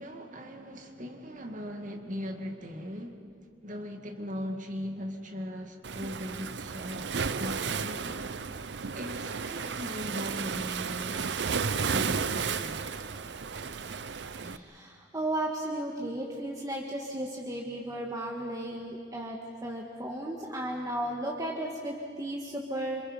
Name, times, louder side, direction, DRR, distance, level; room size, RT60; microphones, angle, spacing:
voice 1, 0.0-3.2 3.6-7.1 7.4-8.3 8.9-12.8, equal, 45° right, 4 dB, 2.2 m, -39 dB
Waves surf, 5.8-14.6, right 5 dB, 65° right, 0.7 m, -33 dB
voice 2, 14.4-19.4 19.6-23.0, right 1 dB, 20° right, -1 dB, 1.7 m, -34 dB
28.0 x 26.5 x 5.5 m, 2.3 s
head